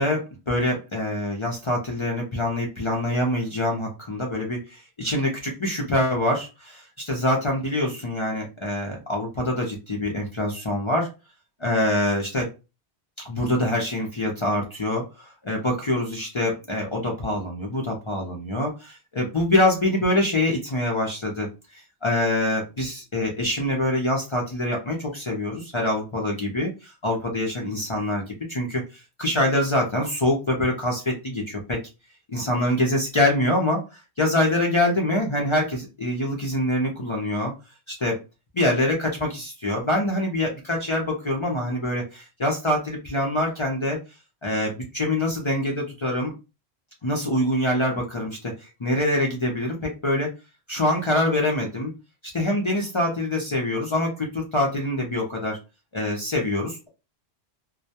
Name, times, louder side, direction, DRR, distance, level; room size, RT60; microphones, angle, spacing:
voice 1, 0.0-11.1 11.6-12.5 13.2-21.5 21.7-31.8 32.3-37.5 37.9-38.2 38.5-44.0 44.4-46.3 47.0-50.3 50.7-51.9 52.3-55.6 55.9-56.9, left 1 dB, 40° left, -1 dB, 0.4 m, -25 dB
2.2 x 2.1 x 2.7 m, 0.28 s
omnidirectional pair, 1.1 m